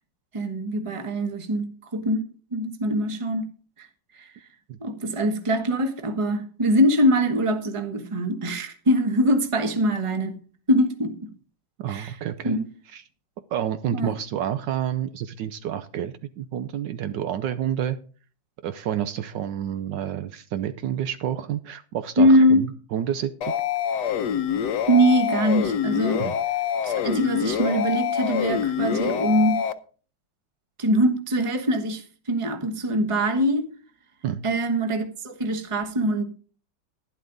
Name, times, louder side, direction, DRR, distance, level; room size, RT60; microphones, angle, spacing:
voice 1, 0.3-2.3 2.5-3.4 3.8-3.9 4.1-4.3 4.8-10.3 10.7-11.2 11.9-12.1 12.4-12.6 13.9-14.1 22.2-22.6 24.9-26.2 26.8-29.6 30.8-33.7 34.4-36.2, equal, 20° right, 1.0 m, -22 dB
voice 2, 11.8-12.6 12.9-13.0 13.5-18.0 18.6-23.5 26.2-26.3 34.2-34.4, right 10 dB, 70° right, 1.2 m, -29 dB
sound 1, 23.4-29.7, left 9 dB, 65° left, 1.2 m, -26 dB
11.5 x 11.0 x 3.9 m
omnidirectional pair, 2.1 m